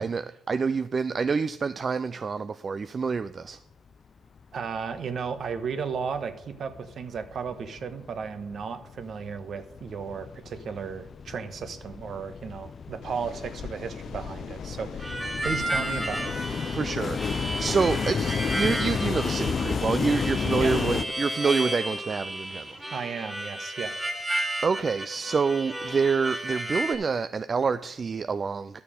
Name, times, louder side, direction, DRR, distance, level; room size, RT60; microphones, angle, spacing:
voice 1, 0.0-3.6 16.7-22.7 24.6-28.8, right 5 dB, 40° right, 0.4 m, -27 dB
sound 1, 4.4-4.5 4.8-5.7 6.1-21.0, left 6 dB, 45° left, 0.3 m, -32 dB
voice 2, 4.5-16.3 20.6-20.7 22.9-23.9, right 6 dB, 55° right, 1.1 m, -34 dB
Train, 13.0-23.0, left 7 dB, 75° left, 1.0 m, -46 dB
Harmonica, 15.0-27.0, right 1 dB, 10° right, 2.5 m, -33 dB
11.0 x 6.8 x 5.1 m
cardioid pair, 90°, 0 cm